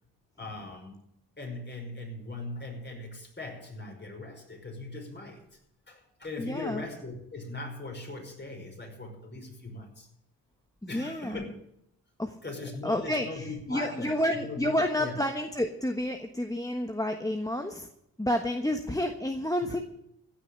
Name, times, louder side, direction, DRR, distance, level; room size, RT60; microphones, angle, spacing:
voice 1, 0.4-1.1 1.4-5.5 5.9-10.1 10.9-11.5 12.4-14.7 15.0-15.2 19.6-19.8, left 2 dB, 30° left, 1 dB, 5.6 m, -40 dB
voice 2, 6.4-6.8 10.9-11.4 12.2-12.4 12.8-17.9 18.2-19.8, left 1 dB, 10° left, 5 dB, 1.4 m, -30 dB
16.0 x 6.0 x 10.0 m, 0.76 s
cardioid pair, 60°, 37 cm